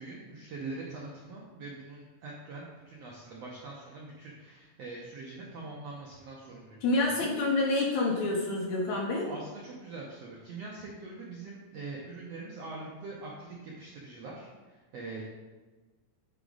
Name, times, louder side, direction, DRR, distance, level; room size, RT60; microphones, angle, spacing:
voice 1, 0.0-7.3 9.2-15.2, right 3 dB, 75° right, -3 dB, 1.5 m, -43 dB
voice 2, 6.8-9.3, left 2 dB, 70° left, -1 dB, 2.0 m, -28 dB
8.1 x 4.7 x 3.9 m, 1.3 s
omnidirectional pair, 4.1 m